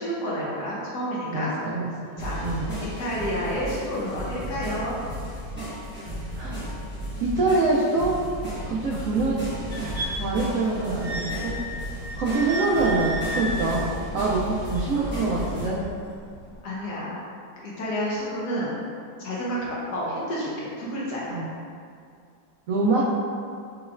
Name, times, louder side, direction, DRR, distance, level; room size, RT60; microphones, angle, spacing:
voice 1, 0.0-1.5 2.2-2.4 3.0-5.0 8.9-9.0 16.6-17.2 17.6-18.8 19.2-21.4, equal, 60° left, -6 dB, 1.4 m, -30 dB
voice 2, 1.3-1.9 2.4-2.7 6.4-6.6 7.2-8.1 8.7-9.3 10.1-11.6 12.2-13.9 14.1-15.8 21.3-21.5 22.7-23.0, right 3 dB, 85° right, -5 dB, 0.7 m, -24 dB
sound 1, 2.2-15.7, right 1 dB, 10° right, 0.8 m, -34 dB
sound 2, 9.7-15.8 16.5-16.6, equal, 10° left, 1.0 m, -34 dB
6.1 x 3.1 x 2.5 m, 2.3 s
omnidirectional pair, 2.0 m